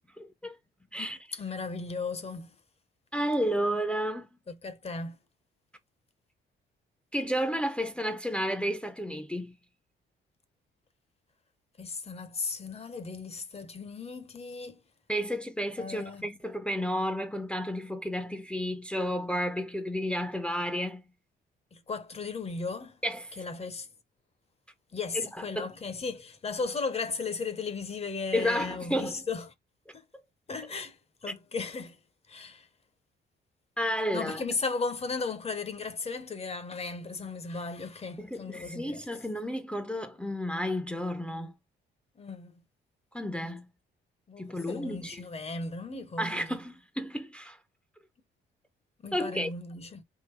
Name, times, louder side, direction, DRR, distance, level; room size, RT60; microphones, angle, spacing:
voice 1, 0.2-0.6 0.9-1.2 3.1-4.3 7.1-9.5 15.1-21.0 23.0-23.3 25.1-25.7 28.3-29.2 31.3-31.4 33.8-34.4 38.2-41.5 43.1-43.6 44.4-45.2 46.2-47.6 49.1-49.5, equal, 5° left, 0.6 m, -32 dB
voice 2, 1.0-2.5 4.5-5.2 11.8-14.8 15.8-16.3 21.7-23.0 23.4-23.9 24.9-29.5 29.9-30.0 30.5-31.0 31.2-32.0 32.3-32.7 34.1-39.1 42.2-42.5 44.3-46.6 49.0-50.0, left 4 dB, 30° left, 0.8 m, -36 dB
3.7 x 2.6 x 4.5 m
cardioid pair, 90°, 20 cm